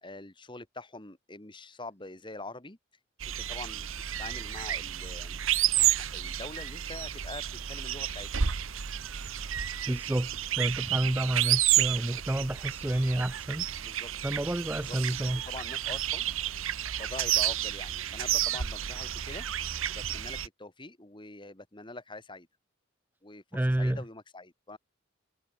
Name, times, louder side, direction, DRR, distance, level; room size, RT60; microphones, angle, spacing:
voice 1, 0.0-2.8 3.2-3.9 4.2-5.4 5.9-8.3 13.8-14.1 14.7-16.2 17.0-19.5 19.9-22.5 23.2-23.4 23.8-24.8, left 2 dB, 25° left, 2.3 m, -44 dB
sound 1, 3.2-20.5, right 11 dB, 80° right, 1.0 m, -31 dB
voice 2, 9.9-13.7 14.2-15.4 23.5-24.0, right 1 dB, 10° right, 0.4 m, -29 dB
head